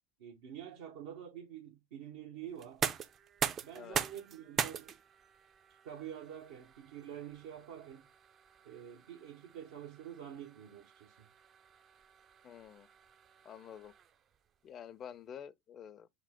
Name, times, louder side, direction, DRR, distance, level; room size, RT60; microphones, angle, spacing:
voice 1, 0.2-2.8 3.6-5.0 5.8-8.1 8.6-11.3, right 9 dB, 70° right, 0.7 m, -47 dB
sound 1, 2.6-14.4, right 8 dB, 40° right, 0.4 m, -42 dB
voice 2, 12.4-12.9 13.4-13.9 14.6-16.1, left 8 dB, 40° left, 0.4 m, -49 dB
4.3 x 2.0 x 4.2 m
hypercardioid pair, 85°, 0 cm